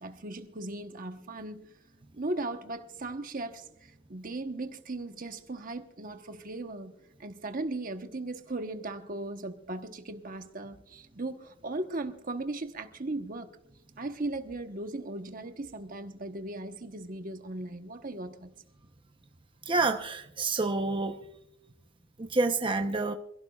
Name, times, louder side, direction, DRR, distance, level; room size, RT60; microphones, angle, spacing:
voice 1, 0.0-1.7 2.1-6.9 7.2-13.6 14.0-18.5, right 2 dB, 40° right, 1.1 m, -37 dB
voice 2, 19.6-21.3 22.2-23.1, right 3 dB, 25° right, 0.8 m, -28 dB
27.0 x 16.5 x 2.4 m
head